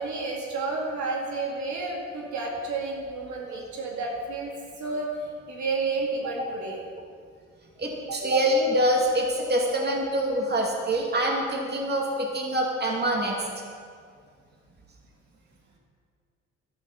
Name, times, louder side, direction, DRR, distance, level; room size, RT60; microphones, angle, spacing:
voice 1, 0.0-5.1 5.5-6.8 8.1-8.2, right 3 dB, 70° right, -1 dB, 2.2 m, -31 dB
voice 2, 7.8-13.4, right 1 dB, 35° right, -1 dB, 2.6 m, -25 dB
12.0 x 11.0 x 5.5 m, 2.2 s
cardioid pair, 90°, 30 cm